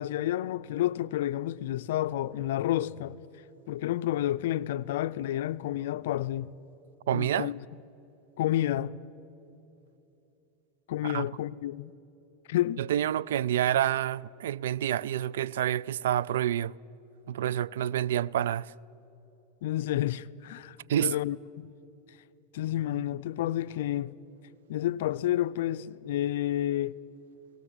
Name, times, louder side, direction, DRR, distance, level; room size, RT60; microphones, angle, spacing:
voice 1, 0.0-3.2 3.7-6.5 7.1-7.6 8.4-9.0 10.9-11.9 12.5-12.8 19.6-21.7 22.5-24.1 24.7-26.9, left 13 dB, 75° left, 0.5 m, -30 dB
voice 2, 7.1-7.5 11.0-11.2 12.8-16.8 17.3-18.7 20.9-21.1, right 11 dB, 85° right, 0.4 m, -28 dB
23.0 x 18.0 x 8.1 m
supercardioid pair, 135°, 0 cm